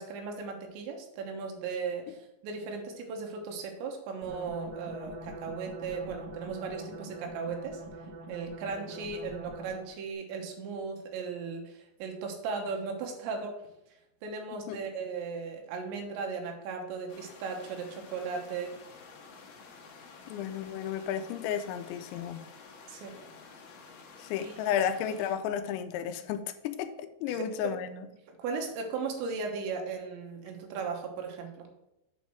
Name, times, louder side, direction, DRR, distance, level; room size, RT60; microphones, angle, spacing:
voice 1, 0.0-7.8 8.3-13.6 14.2-18.7 22.9-23.2 24.3-24.8 27.3-27.7 28.3-31.7, right 5 dB, 80° right, 3.4 m, -37 dB
sound 1, 4.2-10.0, right 2 dB, 60° right, 2.9 m, -44 dB
sound 2, 17.1-25.4, left 4 dB, 70° left, 2.7 m, -51 dB
voice 2, 20.3-22.4 24.2-28.1, left 9 dB, 85° left, 2.9 m, -33 dB
8.0 x 4.2 x 6.1 m
omnidirectional pair, 5.2 m